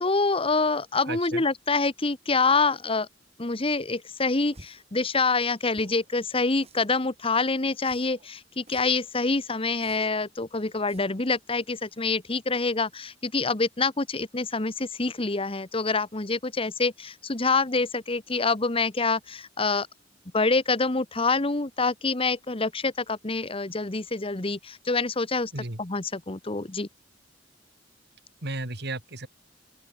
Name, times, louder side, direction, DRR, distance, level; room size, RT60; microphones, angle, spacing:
voice 1, 0.0-3.1 3.4-19.9 20.3-25.5 25.8-26.9, left 3 dB, 30° left, 1.2 m, -26 dB
voice 2, 1.1-1.4 25.5-25.8 28.4-29.3, right 2 dB, 60° right, 3.8 m, -34 dB
sound 1, 4.5-4.9 5.7-6.1 6.6-7.1 7.8-8.3 8.7-9.1 9.8-10.3 10.9-11.3, right 2 dB, 35° right, 7.1 m, -52 dB
open air
head